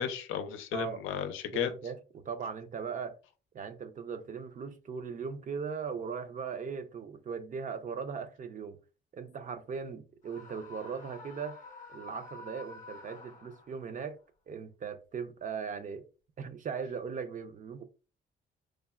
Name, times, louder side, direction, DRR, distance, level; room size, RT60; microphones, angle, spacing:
voice 1, 0.0-1.7, left 9 dB, 90° left, 0.5 m, -34 dB
voice 2, 0.7-1.2 1.5-3.2 3.5-8.8 9.1-11.6 11.9-14.2 14.5-16.0 16.4-17.8, right 6 dB, 40° right, 0.5 m, -39 dB
Screaming, 10.2-13.9, left 3 dB, 40° left, 0.7 m, -49 dB
3.2 x 2.1 x 2.3 m
cardioid pair, 90°, 20 cm